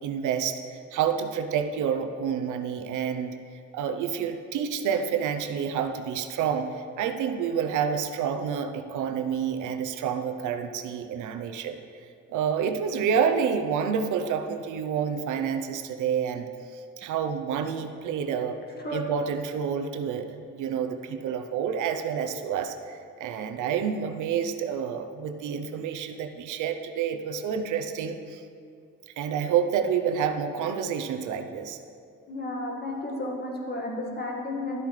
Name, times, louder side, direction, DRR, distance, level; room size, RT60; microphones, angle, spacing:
voice 1, 0.0-3.4 3.7-11.8 12.3-18.6 18.9-28.4 29.2-31.8, right 7 dB, 80° right, 7 dB, 0.7 m, -29 dB
voice 2, 32.3-34.8, left 2 dB, 35° left, -1 dB, 1.8 m, -32 dB
12.5 x 8.3 x 3.2 m, 2.4 s
cardioid pair, 90°, 30 cm